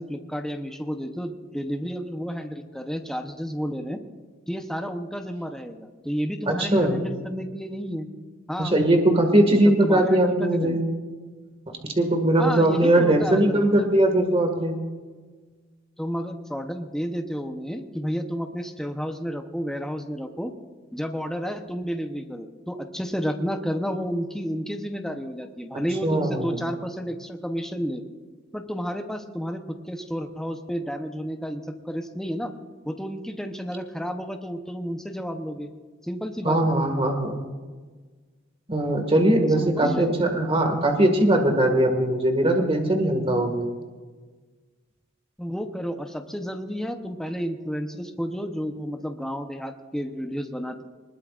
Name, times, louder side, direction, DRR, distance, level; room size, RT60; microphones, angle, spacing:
voice 1, 0.0-4.0 4.5-8.1 8.5-8.8 9.6-10.8 12.4-13.9 16.0-20.5 20.9-28.0 28.5-32.5 32.8-35.7 36.0-36.6 39.6-40.1 45.4-50.8, equal, 5° left, 4 dB, 0.9 m, -31 dB
voice 2, 6.5-7.0 8.6-10.8 12.0-14.8 26.0-26.6 36.4-37.4 38.7-43.7, right 1 dB, 30° right, 4 dB, 1.9 m, -20 dB
20.5 x 20.0 x 2.5 m, 1.4 s
head